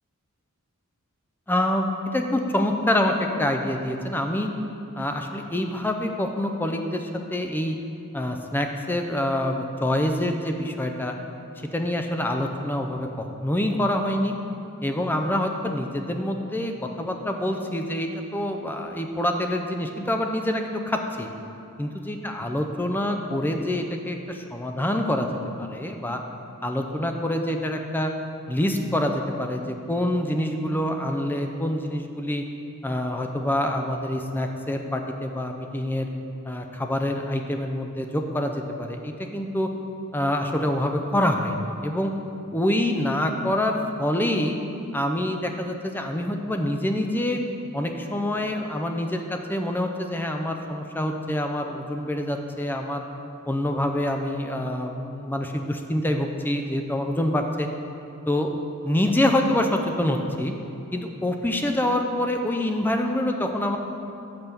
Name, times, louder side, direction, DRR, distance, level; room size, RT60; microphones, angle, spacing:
voice 1, 1.5-1.9 2.1-4.5 5.0-7.8 8.1-11.1 11.7-14.3 14.8-16.7 17.0-21.3 21.8-25.3 25.6-26.2 26.6-28.1 28.5-32.4 32.8-36.1 36.5-39.7 40.1-42.1 42.5-44.6 44.9-47.4 47.7-53.0 53.5-57.7 58.3-58.5 58.8-60.5 60.9-63.8, left 1 dB, 10° left, 4 dB, 0.4 m, -26 dB
6.8 x 5.5 x 5.9 m, 2.7 s
head